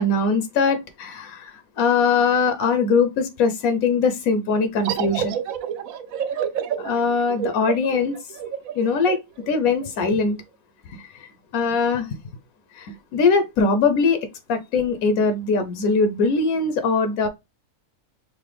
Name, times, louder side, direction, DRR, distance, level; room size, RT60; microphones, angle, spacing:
voice 1, 0.0-5.4 6.8-8.1 8.7-9.2 9.5-10.4 10.9-11.0 11.5-12.1 12.7-14.2 14.5-17.3, left 4 dB, 90° left, 1.2 m, -21 dB
sound 1, 4.8-10.1, right 9 dB, 80° right, 1.0 m, -29 dB
5.8 x 2.1 x 3.3 m
omnidirectional pair, 1.4 m